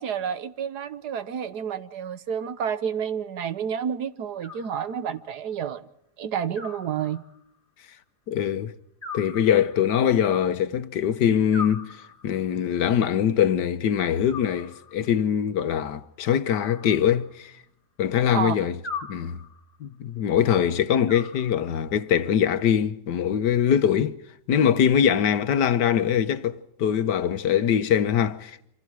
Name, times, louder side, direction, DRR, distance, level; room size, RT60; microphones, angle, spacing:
voice 1, 0.0-5.9 6.2-7.2 18.3-18.5, right 8 dB, 75° right, 1.6 m, -30 dB
Animal, 4.4-5.3 6.5-7.6 9.0-10.1 11.5-12.5 14.3-15.2 16.5-17.6 18.8-19.8 21.1-22.0, left 5 dB, 25° left, 2.9 m, -40 dB
voice 2, 8.3-8.7 9.1-11.9 12.2-17.5 18.0-18.8 19.1-19.4 19.8-24.2 24.5-28.7, left 9 dB, 85° left, 1.7 m, -23 dB
27.5 x 25.5 x 4.7 m
omnidirectional pair, 1.8 m